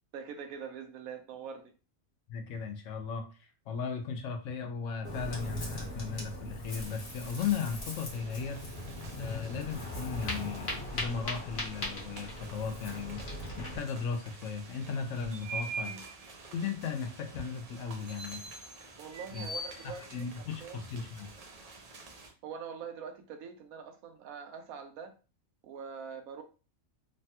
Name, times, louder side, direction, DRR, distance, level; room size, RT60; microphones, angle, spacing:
voice 1, 0.1-1.7 15.8-16.0 19.0-20.3 20.6-20.8 22.4-25.1 25.6-26.4, right 6 dB, 85° right, 6 dB, 1.0 m, -43 dB
voice 2, 2.3-8.6 9.2-13.2 13.6-15.9 16.5-18.4 19.3-19.5 20.1-21.3, left 6 dB, 75° left, 5 dB, 0.9 m, -36 dB
Ocean, 5.0-13.8, left 1 dB, 50° left, 1.2 m, -39 dB
sound 1, 6.7-22.3, right 3 dB, 65° right, 0.3 m, -46 dB
3.2 x 2.2 x 2.7 m, 0.34 s
omnidirectional pair, 1.4 m